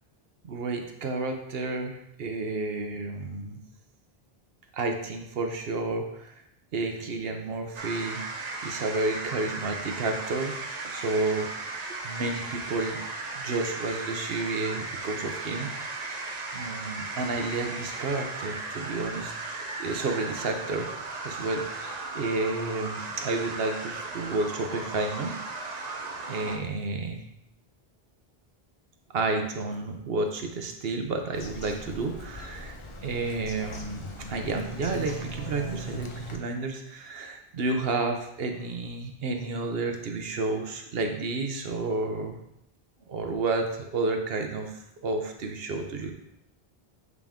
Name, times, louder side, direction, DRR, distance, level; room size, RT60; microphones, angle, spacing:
voice 1, 0.4-3.6 4.7-6.4 6.7-11.5 11.9-13.0 13.3-16.1 16.5-19.3 19.8-20.9 21.2-25.8 26.3-27.2 29.1-42.4 43.1-46.1, right 3 dB, 70° right, 4 dB, 1.0 m, -31 dB
sound 1, 7.7-26.6, right 3 dB, 50° right, 0.7 m, -36 dB
Bird vocalization bird call bird song, 31.3-36.4, equal, 35° left, 0.6 m, -40 dB
8.1 x 3.6 x 3.5 m, 0.79 s
omnidirectional pair, 1.0 m